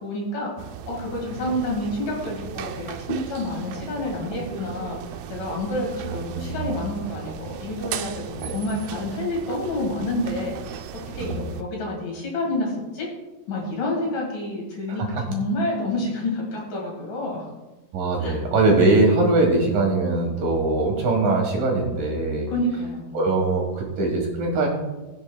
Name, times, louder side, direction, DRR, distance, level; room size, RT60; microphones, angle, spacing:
voice 1, 0.0-0.5 0.9-13.1 13.5-17.5 18.2-18.4 22.5-23.5, left 1 dB, 55° left, -2 dB, 3.3 m, -29 dB
sound 1, 0.6-11.6, right 9 dB, 85° right, 2.1 m, -36 dB
voice 2, 6.0-6.8 8.4-8.6 11.2-11.4 14.9-15.1 17.9-22.5 23.1-24.7, right 2 dB, 65° right, 0 dB, 2.9 m, -22 dB
20.5 x 7.1 x 2.3 m, 1.1 s
omnidirectional pair, 4.8 m